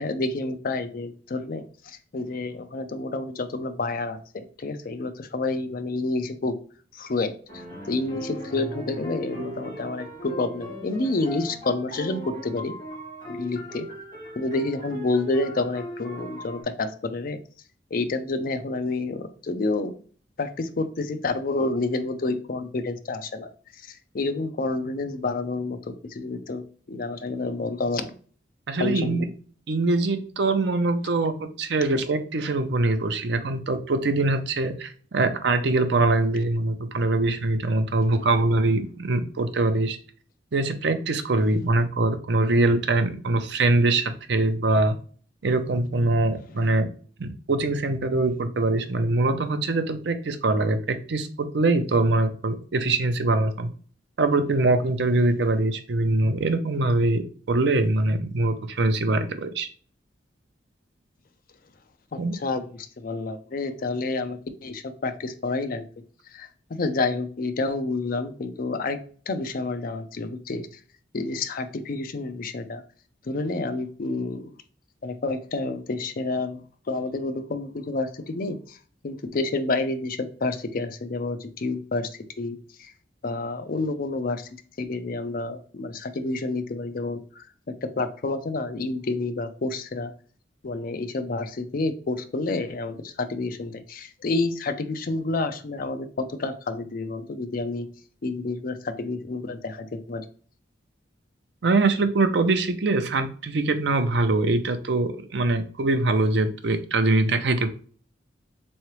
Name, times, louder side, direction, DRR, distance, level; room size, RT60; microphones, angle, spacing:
voice 1, 0.0-6.6 6.9-12.7 13.3-13.9 14.4-17.4 17.9-19.9 20.4-23.5 23.8-26.6 26.9-28.1 28.8-29.3 62.1-65.8 66.3-69.0 69.3-70.7 71.1-72.8 73.3-74.5 75.0-76.6 76.9-78.8 79.0-82.1 82.4-82.9 83.2-84.5 84.8-90.1 90.6-97.9 98.2-100.2, left 3 dB, 50° left, 9 dB, 0.5 m, -29 dB
sound 1, 7.5-16.6, equal, 25° left, 1.9 m, -38 dB
voice 2, 28.7-29.3 29.7-40.0 40.5-45.0 45.4-46.9 47.2-53.7 54.2-59.7 62.2-62.3 101.6-107.7, right 2 dB, 65° right, 8 dB, 0.6 m, -23 dB
3.7 x 3.1 x 3.0 m, 0.43 s
head